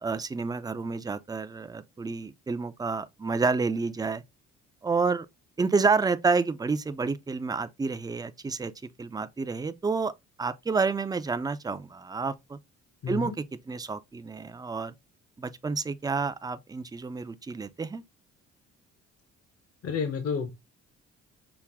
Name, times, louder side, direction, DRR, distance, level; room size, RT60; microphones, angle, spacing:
voice 1, 0.0-4.2 4.8-5.3 5.6-8.7 9.0-10.1 10.4-12.6 13.1-14.9 15.4-18.0, right 4 dB, 15° right, 0.4 m, -29 dB
voice 2, 13.0-13.3 19.8-20.5, left 6 dB, 50° left, 0.9 m, -30 dB
5.9 x 2.1 x 3.5 m
cardioid pair, 90°, 30 cm